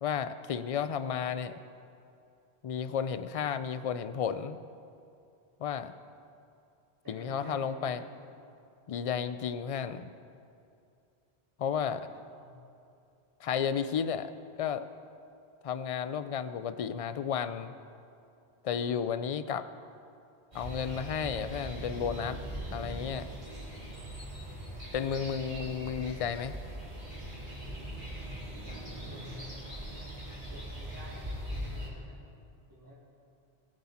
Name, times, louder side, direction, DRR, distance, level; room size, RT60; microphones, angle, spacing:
voice 1, 0.0-1.5 2.6-4.6 5.6-5.9 7.1-8.0 8.9-10.1 11.6-12.1 13.4-14.3 14.6-14.9 15.6-17.7 18.6-19.7 20.5-22.4 22.7-23.3 24.9-26.6, left 7 dB, 50° left, 12 dB, 0.4 m, -32 dB
voice 2, 7.0-8.1 12.1-12.6 18.8-19.0 28.5-29.7 30.3-32.3 32.7-32.9, equal, 20° right, -6 dB, 2.4 m, -52 dB
sound 1, 20.5-31.9, right 1 dB, 50° right, 3.3 m, -41 dB
20.5 x 7.7 x 4.3 m, 2.6 s
omnidirectional pair, 1.0 m